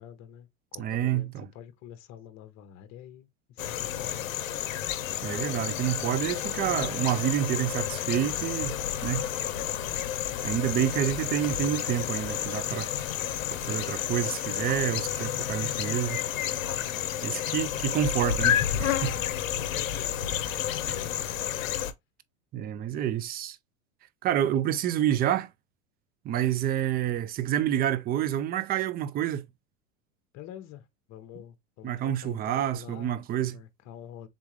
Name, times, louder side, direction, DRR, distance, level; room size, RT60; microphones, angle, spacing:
voice 1, 0.0-4.7 10.5-10.8 19.5-20.2 20.8-21.3 30.3-33.2 33.5-34.3, left 11 dB, 45° left, 0.9 m, -47 dB
voice 2, 0.8-1.5 5.2-8.8 9.0-9.3 10.4-12.9 13.7-16.2 17.2-19.1 20.9-21.0 22.5-23.6 24.2-25.5 26.2-29.4 31.8-33.6, right 11 dB, 25° right, 0.4 m, -28 dB
sound 1, 3.6-21.9, left 11 dB, 90° left, 0.7 m, -30 dB
3.6 x 3.5 x 3.1 m
hypercardioid pair, 110°, 39 cm